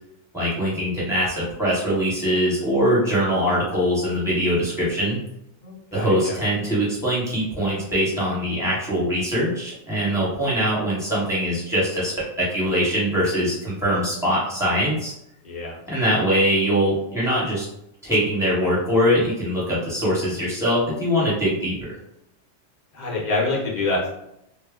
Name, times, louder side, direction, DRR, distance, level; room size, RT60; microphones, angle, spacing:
voice 1, 0.3-5.2 5.9-12.1 12.4-15.1 15.9-17.7 18.0-21.7, equal, 5° right, -8 dB, 0.9 m, -22 dB
voice 2, 5.6-6.4 15.4-15.8 22.9-24.1, left 2 dB, 40° left, -3 dB, 0.8 m, -26 dB
2.2 x 2.1 x 3.5 m, 0.82 s
omnidirectional pair, 1.3 m